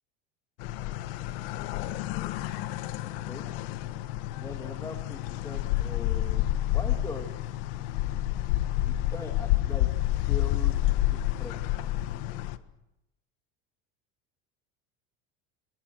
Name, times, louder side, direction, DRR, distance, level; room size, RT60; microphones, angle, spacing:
sound 1, 0.6-12.6, left 15 dB, 75° left, 1.6 m, -29 dB
voice 1, 1.8-2.7 3.3-3.5 4.4-7.4 8.7-11.9, left 3 dB, 10° left, 4 dB, 2.4 m, -42 dB
27.5 x 25.0 x 6.5 m, 0.92 s
cardioid pair, 160°, 30 cm